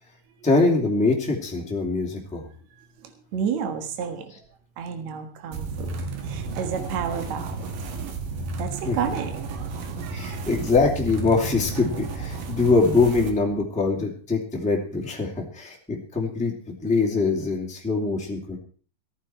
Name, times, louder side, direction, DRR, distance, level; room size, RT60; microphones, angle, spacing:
voice 1, 0.4-2.4 8.8-9.0 10.1-18.6, left 3 dB, ahead, -1 dB, 2.2 m, -23 dB
voice 2, 2.8-4.3 4.8-5.9 6.2-7.7 8.6-10.5, right 7 dB, 60° right, 6 dB, 2.7 m, -31 dB
sound 1, 5.5-13.3, right 4 dB, 80° right, 3.3 m, -32 dB
14.5 x 14.0 x 4.5 m, 0.42 s
omnidirectional pair, 3.7 m